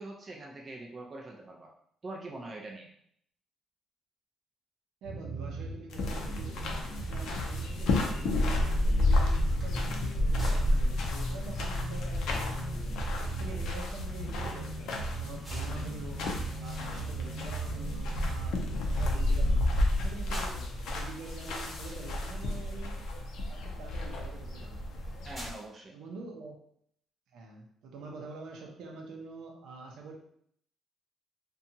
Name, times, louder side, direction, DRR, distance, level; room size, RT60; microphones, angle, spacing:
voice 1, 0.0-1.7 2.0-2.9 25.2-25.9, right 2 dB, 30° right, -1 dB, 0.4 m, -43 dB
sound 1, 5.0-19.5, right 2 dB, 55° right, 1.1 m, -39 dB
voice 2, 5.0-11.0 11.3-12.9 13.2-16.3 16.6-18.6 18.9-23.0 23.5-25.0 25.9-26.6 27.3-30.1, right 3 dB, 80° right, 1 dB, 0.5 m, -46 dB
sound 2, 5.9-25.5, left 1 dB, 75° left, 0.5 m, -31 dB
sound 3, 8.5-25.6, equal, 5° right, 0.9 m, -53 dB
2.7 x 2.2 x 2.6 m, 0.68 s
cardioid pair, 140°, 0 cm